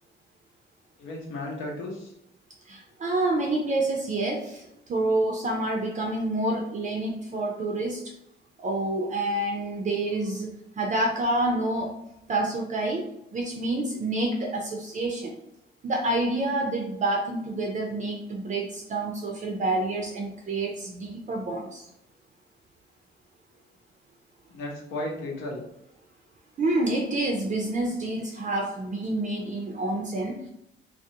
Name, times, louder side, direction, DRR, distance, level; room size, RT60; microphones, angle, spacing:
voice 1, 1.0-2.1 24.5-25.6, left 1 dB, 75° left, -2 dB, 0.8 m, -34 dB
voice 2, 2.7-8.0 8.6-11.9 12.3-15.4 15.8-21.8 26.6-30.4, right 2 dB, 40° right, 0 dB, 0.4 m, -28 dB
2.3 x 2.0 x 2.7 m, 0.80 s
cardioid pair, 90°, 20 cm